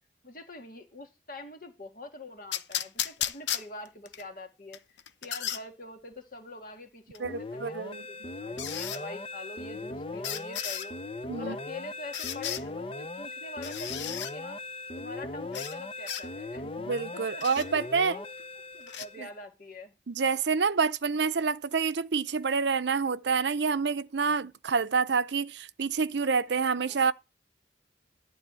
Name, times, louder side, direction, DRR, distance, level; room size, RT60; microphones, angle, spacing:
voice 1, 0.2-11.0 11.4-14.6 15.0-16.6 17.1-18.3 18.7-20.0 26.8-27.0, left 2 dB, 50° left, 2.0 m, -45 dB
sound 1, 2.5-4.2 4.7-5.6 7.1-7.2 8.6-9.0 10.2-10.9 12.1-12.6 13.6-14.3 15.5-15.8 16.1-16.2 17.4-17.7 18.9-19.1, left 10 dB, 80° left, 0.8 m, -34 dB
sound 2, 7.2-19.4, left 2 dB, 30° left, 0.6 m, -39 dB
voice 2, 7.2-8.0 11.3-11.6 16.8-18.2 19.2-19.3 20.1-27.1, right 5 dB, 75° right, 0.6 m, -28 dB
11.5 x 4.0 x 7.5 m
head